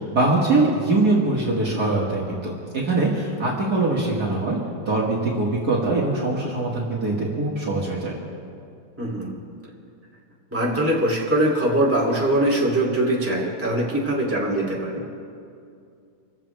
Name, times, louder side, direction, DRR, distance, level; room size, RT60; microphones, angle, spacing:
voice 1, 0.0-4.6 4.9-8.1, right 2 dB, 50° right, -4 dB, 2.3 m, -22 dB
voice 2, 9.0-9.3 10.5-15.0, right 1 dB, 5° right, -5 dB, 2.8 m, -22 dB
26.5 x 15.0 x 3.4 m, 2.4 s
omnidirectional pair, 2.3 m